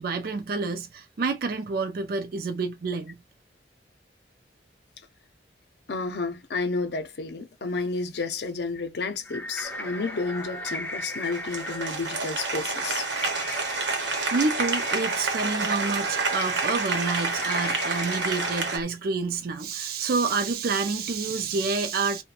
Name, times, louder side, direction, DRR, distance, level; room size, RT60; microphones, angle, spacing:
voice 1, 0.0-3.2 14.3-22.2, right 4 dB, 55° right, 0.4 m, -28 dB
voice 2, 5.9-13.1, left 3 dB, 65° left, 0.6 m, -31 dB
sound 1, 9.2-18.8, equal, 10° left, 0.4 m, -37 dB
Applause, 9.7-18.8, right 3 dB, 85° right, 0.9 m, -29 dB
2.5 x 2.2 x 2.7 m
head